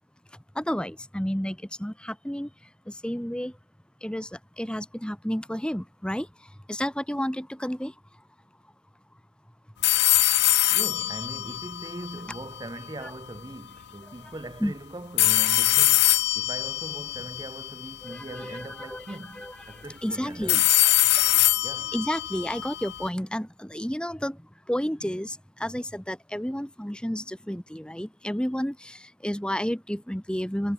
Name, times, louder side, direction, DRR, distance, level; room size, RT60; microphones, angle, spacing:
voice 1, 0.6-2.5 3.0-3.5 4.0-4.3 4.6-6.3 6.7-7.9 14.6-14.7 18.0-19.6 20.0-20.6 21.9-24.4 24.7-30.7, equal, 5° left, 1.2 m, -31 dB
sound 1, 9.8-12.9 15.2-18.3 20.5-23.1, left 18 dB, 55° left, 0.5 m, -23 dB
voice 2, 10.7-20.7 21.6-21.9, right 1 dB, 20° right, 0.7 m, -40 dB
head